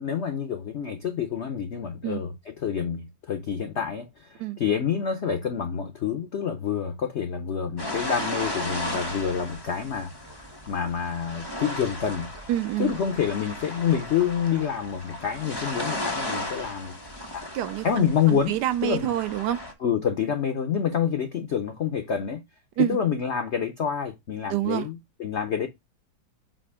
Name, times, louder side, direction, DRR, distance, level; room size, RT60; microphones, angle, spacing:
voice 1, 0.0-10.1 10.7-12.3 12.8-17.0 17.3-17.5 17.8-19.1 19.8-22.4 22.8-25.7, left 7 dB, 85° left, 0.6 m, -27 dB
sound 1, 7.8-19.7, left 1 dB, 15° left, 1.0 m, -35 dB
voice 2, 12.5-12.9 17.5-19.6 22.8-23.0 24.5-24.9, right 13 dB, 70° right, 1.1 m, -27 dB
7.6 x 2.6 x 4.7 m
omnidirectional pair, 2.1 m